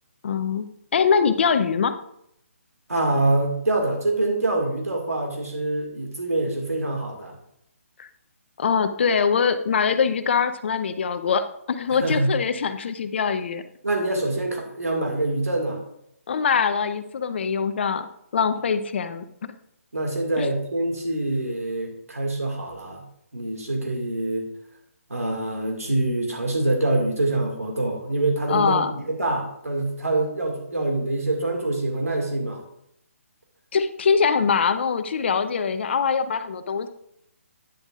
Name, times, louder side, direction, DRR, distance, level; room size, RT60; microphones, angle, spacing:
voice 1, 0.2-0.7 0.9-1.9 8.0-8.1 8.6-13.6 16.3-18.1 18.3-19.5 20.4-20.5 28.5-28.9 33.7-36.9, left 6 dB, 50° left, 11 dB, 0.7 m, -23 dB
voice 2, 2.9-7.4 12.0-12.3 13.8-15.8 19.9-23.0 23.3-24.4 25.1-28.8 29.1-32.6, right 2 dB, 85° right, 1 dB, 2.0 m, -25 dB
10.0 x 8.7 x 2.5 m, 0.76 s
figure-of-eight pair, 145°, 8 cm